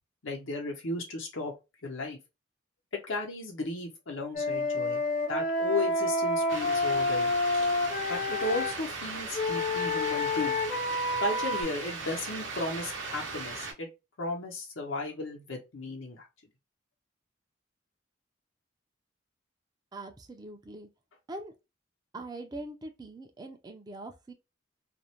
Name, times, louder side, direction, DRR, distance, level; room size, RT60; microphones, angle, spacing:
voice 1, 0.2-1.5 1.8-2.2 3.1-5.0 5.3-7.4 8.1-10.5 11.2-13.9 14.2-16.3, left 2 dB, 85° left, 0.9 m, -35 dB
Wind instrument woodwind instrument, 4.3-8.8 9.3-11.6, left 2 dB, 45° left, 0.7 m, -29 dB
sound 1, 6.5-13.7, right 4 dB, 75° right, 0.7 m, -38 dB
voice 2, 19.9-20.9 21.3-21.5 22.1-24.3, right 2 dB, 20° right, 0.4 m, -42 dB
2.5 x 2.1 x 2.9 m
head